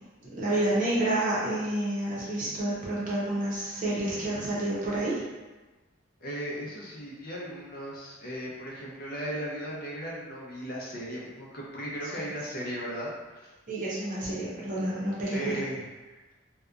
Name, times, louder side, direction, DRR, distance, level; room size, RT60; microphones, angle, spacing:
voice 1, 0.3-5.2 13.7-15.6, right 1 dB, 45° right, -7 dB, 0.7 m, -29 dB
voice 2, 6.2-13.5 15.3-16.3, equal, 50° left, -4 dB, 0.5 m, -37 dB
2.7 x 2.2 x 2.4 m, 1.2 s
head